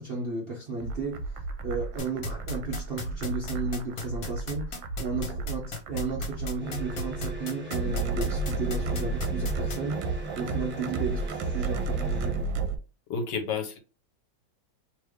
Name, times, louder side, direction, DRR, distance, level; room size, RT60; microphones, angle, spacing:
voice 1, 0.0-12.5, right 4 dB, 45° right, 0.8 m, -34 dB
sound 1, 0.8-12.8, right 3 dB, 80° right, 1.3 m, -32 dB
sound 2, 2.0-9.8, left 4 dB, 55° left, 1.3 m, -36 dB
sound 3, 6.6-12.5, right 1 dB, 10° right, 0.6 m, -40 dB
voice 2, 13.1-13.8, left 5 dB, 70° left, 1.3 m, -30 dB
3.3 x 3.1 x 3.5 m
omnidirectional pair, 2.1 m